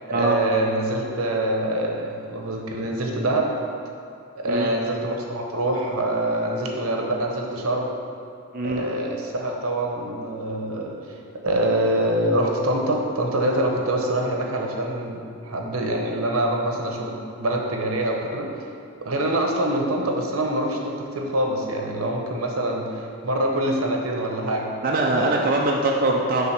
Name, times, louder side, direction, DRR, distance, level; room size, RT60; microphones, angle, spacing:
voice 1, 0.1-3.6 4.3-7.9 8.6-11.0 11.4-18.5 19.0-24.7 25.0-25.6, right 1 dB, 80° right, 1 dB, 1.0 m, -25 dB
voice 2, 8.5-8.8 24.8-26.5, right 2 dB, 40° right, -2 dB, 0.5 m, -22 dB
7.5 x 3.7 x 5.9 m, 2.5 s
head